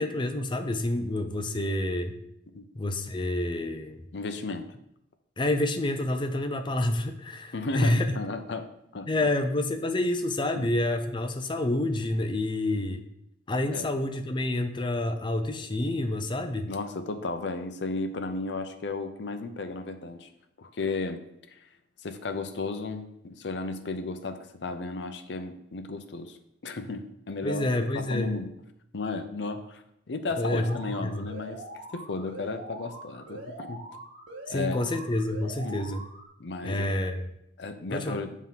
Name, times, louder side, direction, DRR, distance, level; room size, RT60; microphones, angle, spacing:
voice 1, 0.0-2.2 2.7-4.0 5.4-8.2 9.1-13.0 13.5-16.7 27.4-28.4 30.4-31.3 34.5-36.0 36.6-37.3 37.9-38.2, left 1 dB, 25° left, 7 dB, 0.5 m, -28 dB
voice 2, 4.1-4.7 7.5-9.1 10.5-10.7 13.6-13.9 16.7-20.3 20.6-21.2 21.5-21.6 22.0-27.6 27.9-28.5 28.9-31.6 31.9-33.8 34.5-34.8 35.6-35.8 36.4-36.9 37.6-38.3, left 3 dB, 65° left, 7 dB, 0.6 m, -34 dB
Alarm, 30.3-36.3, right 1 dB, 85° right, 1.5 m, -43 dB
7.5 x 3.6 x 5.7 m, 0.80 s
head